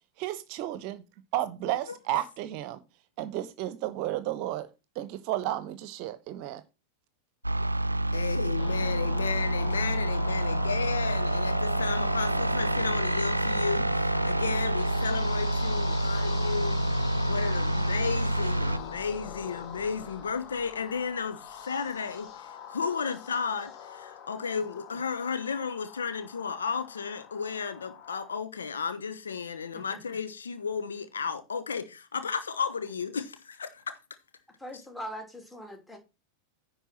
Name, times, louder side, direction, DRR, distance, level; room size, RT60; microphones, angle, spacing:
voice 1, 0.2-1.0 1.3-2.8 3.2-4.7 4.9-6.6, right 13 dB, 45° right, 1.0 m, -32 dB
sound 1, 7.4-18.8, right 1 dB, 85° right, 0.6 m, -28 dB
voice 2, 8.1-16.8 17.3-34.0, left 6 dB, 70° left, 1.2 m, -33 dB
sound 2, 8.6-28.3, left 8 dB, 40° left, 1.9 m, -42 dB
voice 3, 34.6-36.0, equal, 5° left, 3.0 m, -41 dB
10.5 x 4.6 x 5.8 m
figure-of-eight pair, 90°, 0 cm